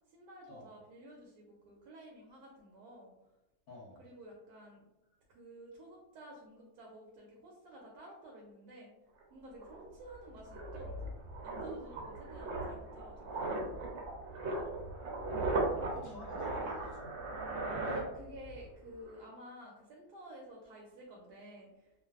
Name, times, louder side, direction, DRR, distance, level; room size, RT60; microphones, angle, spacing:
voice 1, 0.1-3.1 4.0-4.8 5.3-8.9 9.3-11.1 11.4-13.9 16.0-16.2 17.8-21.9, right 1 dB, 85° right, -2 dB, 1.1 m, -51 dB
voice 2, 3.7-4.0 15.2-17.1, left 2 dB, 60° left, -4 dB, 0.9 m, -52 dB
sound 1, 9.2-9.3 9.6-18.7 18.9-19.2, right 2 dB, 60° right, 0.8 m, -38 dB
2.5 x 2.4 x 2.3 m, 0.93 s
omnidirectional pair, 1.6 m